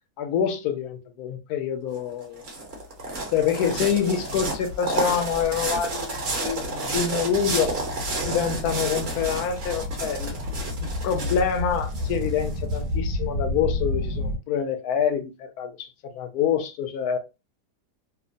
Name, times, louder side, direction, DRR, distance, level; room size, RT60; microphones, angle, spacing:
voice 1, 0.2-2.4 3.3-7.7 8.3-10.4 10.8-17.2, left 7 dB, 70° left, 1.0 m, -26 dB
sound 1, 1.9-12.8, right 2 dB, 50° right, 0.9 m, -31 dB
sound 2, 7.3-14.4, left 2 dB, 75° right, 1.1 m, -30 dB
2.9 x 2.1 x 2.5 m
omnidirectional pair, 1.8 m